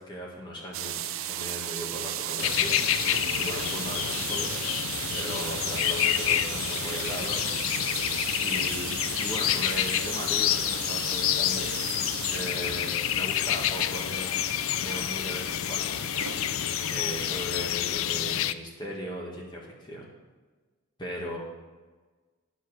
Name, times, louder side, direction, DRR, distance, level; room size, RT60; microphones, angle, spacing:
voice 1, 0.0-2.7 3.4-4.6 5.1-7.4 8.4-11.7 12.3-14.3 14.8-16.0 16.5-20.1 21.0-21.4, equal, 20° left, -2 dB, 1.6 m, -38 dB
sound 1, 0.7-17.5, right 11 dB, 80° right, 0.6 m, -36 dB
sound 2, 2.4-18.5, left 11 dB, 80° left, 0.4 m, -28 dB
11.5 x 5.6 x 6.3 m, 1.3 s
head